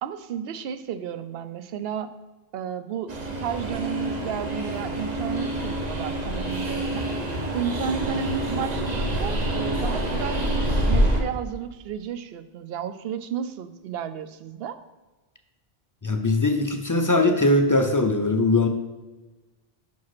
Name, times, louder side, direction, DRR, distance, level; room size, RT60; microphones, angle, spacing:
voice 1, 0.0-2.1 2.5-7.1 7.5-14.8, right 8 dB, 75° right, 10 dB, 0.8 m, -33 dB
Train, 3.1-11.2, right 1 dB, 45° right, 1.0 m, -26 dB
voice 2, 16.0-18.7, left 2 dB, 30° left, 5 dB, 0.3 m, -21 dB
5.7 x 4.9 x 6.0 m, 1.2 s
omnidirectional pair, 1.0 m